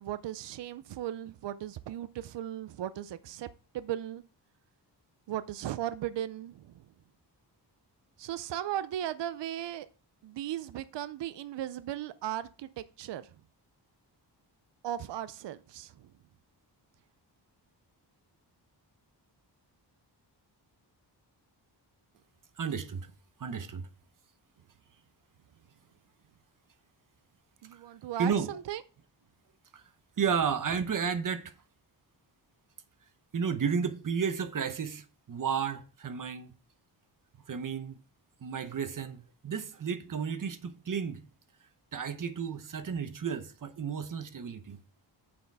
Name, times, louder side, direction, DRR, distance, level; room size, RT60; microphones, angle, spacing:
voice 1, 0.0-3.5 3.7-4.2 5.3-6.7 8.2-9.9 10.2-13.3 14.8-15.9 27.6-28.8, right 12 dB, 75° right, 0.6 m, -37 dB
voice 2, 22.6-23.1 23.4-23.9 27.7-27.8 28.2-28.6 29.7-29.8 30.2-31.5 33.3-36.5 37.5-38.0 38.4-41.2 41.9-44.8, right 6 dB, 50° right, 0.9 m, -32 dB
9.5 x 6.9 x 3.4 m
wide cardioid pair, 135°, 43 cm